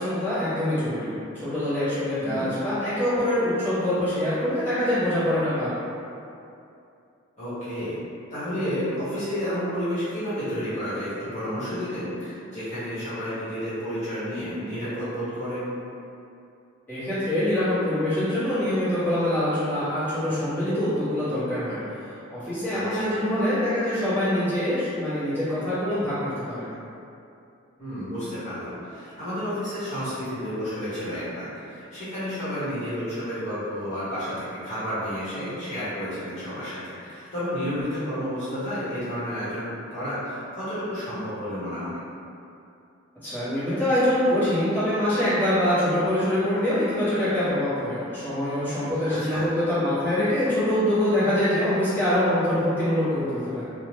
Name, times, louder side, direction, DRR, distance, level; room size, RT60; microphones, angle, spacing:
voice 1, 0.0-5.8 16.9-21.8 22.3-26.7 43.2-53.6, left 1 dB, 10° left, -16 dB, 1.0 m, -24 dB
voice 2, 2.2-2.5 7.4-8.0 8.3-15.7 22.7-23.1 27.8-42.0 49.1-49.5, equal, 35° left, -13 dB, 1.0 m, -31 dB
2.7 x 2.0 x 3.1 m, 2.6 s
head